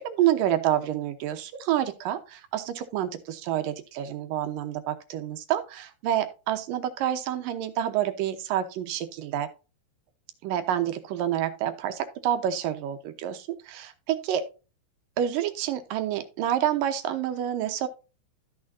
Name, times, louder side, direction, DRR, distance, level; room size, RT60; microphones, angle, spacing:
voice 1, 0.0-9.5 10.4-14.4 15.2-17.9, right 11 dB, 75° right, 9 dB, 2.5 m, -28 dB
14.0 x 6.2 x 2.7 m, 0.32 s
omnidirectional pair, 4.2 m